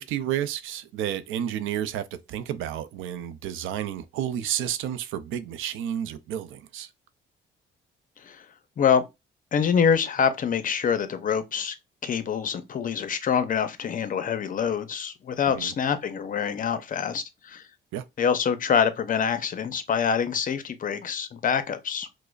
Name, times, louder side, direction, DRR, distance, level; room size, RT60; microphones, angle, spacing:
voice 1, 0.0-6.9 15.5-15.7 17.9-18.0, right 10 dB, 90° right, 0.4 m, -31 dB
voice 2, 9.5-11.7 12.0-17.6 18.2-22.1, left 7 dB, 45° left, 0.5 m, -25 dB
4.8 x 2.0 x 2.3 m
cardioid pair, 90°, 20 cm